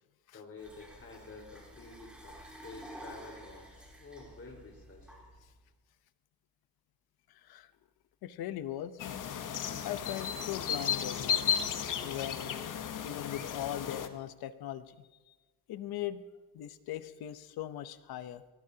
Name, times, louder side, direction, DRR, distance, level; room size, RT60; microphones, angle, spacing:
voice 1, 0.3-5.1, left 3 dB, 40° left, -1 dB, 4.6 m, -50 dB
sound 1, 0.6-5.6, equal, 5° right, 4.1 m, -51 dB
voice 2, 7.3-7.7 8.2-9.0 9.8-11.5 12.0-12.7 13.0-15.3 15.7-16.2 16.5-18.4, left 12 dB, 85° left, 12 dB, 0.9 m, -40 dB
sound 2, 9.0-14.1, left 8 dB, 60° left, 1.2 m, -34 dB
23.5 x 17.0 x 2.9 m, 1.3 s
cardioid pair, 100°, 36 cm